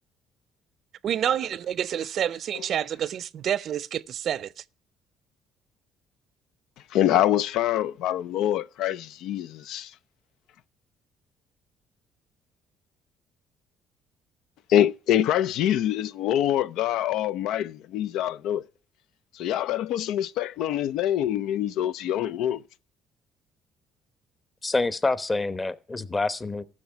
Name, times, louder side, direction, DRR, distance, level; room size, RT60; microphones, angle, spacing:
voice 1, 1.0-4.5, right 10 dB, 60° right, 0.5 m, -28 dB
voice 2, 6.9-9.9 14.7-18.6 19.3-22.6, left 11 dB, 80° left, 0.4 m, -25 dB
voice 3, 24.6-26.6, left 3 dB, 20° left, 0.9 m, -27 dB
14.5 x 6.2 x 5.7 m
cardioid pair, 95°, 0 cm